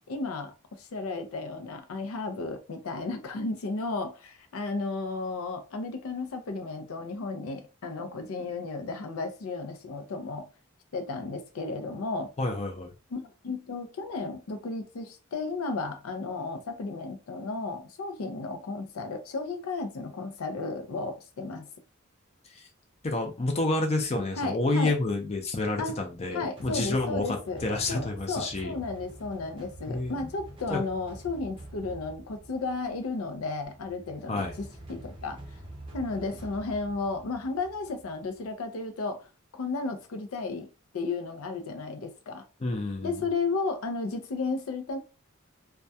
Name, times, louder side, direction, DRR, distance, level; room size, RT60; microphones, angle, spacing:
voice 1, 0.1-10.5 10.9-12.3 13.1-21.7 24.4-24.9 25.8-26.0 26.3-27.6 27.9-35.4 35.9-39.3 39.5-42.4 43.0-45.0, left 3 dB, 80° left, 0.5 m, -34 dB
voice 2, 12.4-12.9 22.6-22.7 23.0-27.4 27.6-28.7 29.9-30.1 30.7-30.8 34.3-34.5 42.6-43.1, left 2 dB, 30° left, 0.5 m, -29 dB
sound 1, 26.6-38.5, right 1 dB, 25° right, 0.6 m, -47 dB
2.2 x 2.2 x 2.6 m
head